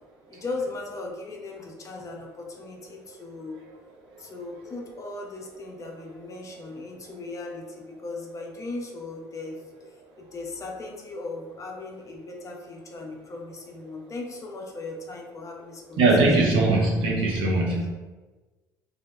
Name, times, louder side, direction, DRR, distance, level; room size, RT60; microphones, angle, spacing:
voice 1, 0.3-3.6 4.2-16.1 17.4-17.8, left 3 dB, 35° left, 1 dB, 0.5 m, -38 dB
voice 2, 16.0-17.9, right 2 dB, 65° right, -1 dB, 0.6 m, -21 dB
2.1 x 2.0 x 3.0 m, 1.2 s
hypercardioid pair, 60°, 9 cm